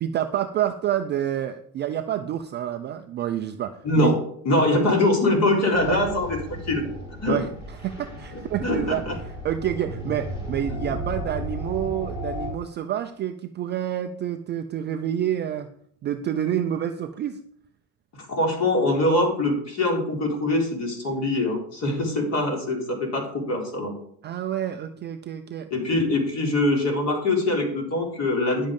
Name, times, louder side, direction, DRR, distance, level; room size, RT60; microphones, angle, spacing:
voice 1, 0.0-4.1 5.8-6.0 7.3-15.7 16.0-17.4 24.2-25.7, right 10 dB, 25° right, 7 dB, 0.4 m, -28 dB
voice 2, 3.8-4.2 4.4-6.8 7.2-7.4 8.6-9.1 18.3-23.9 25.7-28.7, left 2 dB, 35° left, 1 dB, 3.8 m, -23 dB
sound 1, 5.7-12.5, equal, 10° left, 4.3 m, -34 dB
10.5 x 7.4 x 5.2 m, 0.64 s
supercardioid pair, 140°, 44 cm